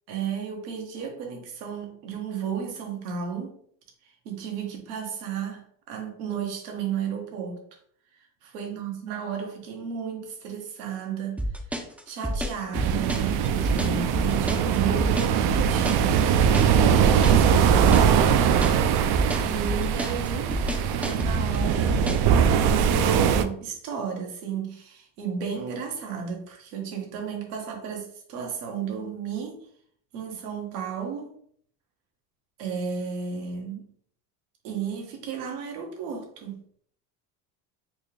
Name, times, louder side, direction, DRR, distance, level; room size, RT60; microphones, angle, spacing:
voice 1, 0.1-3.6 4.2-7.6 8.4-11.4 12.1-18.4 19.4-20.6 20.9-22.1 22.4-29.7 30.1-31.3 32.6-33.8 34.6-36.6, right 6 dB, 90° right, 1.1 m, -33 dB
sound 1, 11.4-22.3, equal, 5° right, 0.4 m, -29 dB
sound 2, 12.7-23.4, right 7 dB, 60° right, 0.5 m, -21 dB
4.3 x 2.4 x 3.2 m
supercardioid pair, 100°, 45 cm